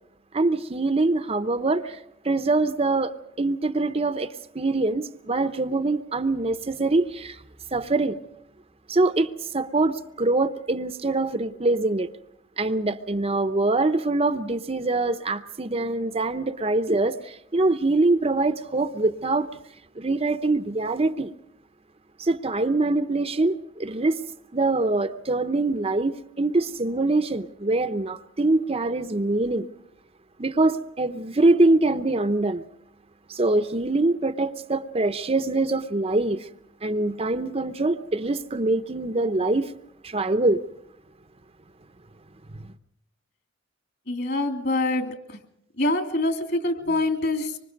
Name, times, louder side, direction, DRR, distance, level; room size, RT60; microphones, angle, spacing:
voice 1, 0.3-2.0 2.2-7.4 7.7-8.2 8.9-12.1 12.6-19.5 20.0-21.3 22.2-24.2 24.5-29.7 30.4-32.6 33.3-36.5 36.8-39.7 40.0-40.6 42.6-42.7, right 2 dB, 30° right, 0.8 m, -24 dB
voice 2, 44.1-45.4 45.8-47.6, left 2 dB, 55° left, 3.3 m, -25 dB
25.5 x 25.0 x 5.3 m
head